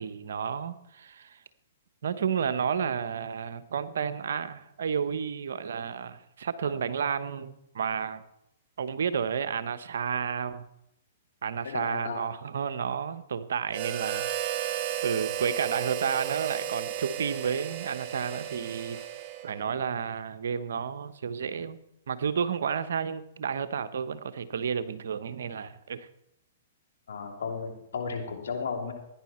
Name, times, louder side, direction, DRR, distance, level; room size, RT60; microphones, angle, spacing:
voice 1, 0.0-1.4 2.0-8.2 8.8-10.6 11.4-14.8 15.0-19.0 19.4-21.8 22.1-26.1, right 7 dB, 70° right, 11 dB, 1.0 m, -31 dB
voice 2, 11.6-12.3 27.1-28.9, left 5 dB, 75° left, 2 dB, 3.1 m, -34 dB
Harmonica, 13.7-19.7, right 11 dB, 40° right, 1.2 m, -34 dB
16.0 x 10.5 x 4.4 m, 0.81 s
hypercardioid pair, 120°, 0 cm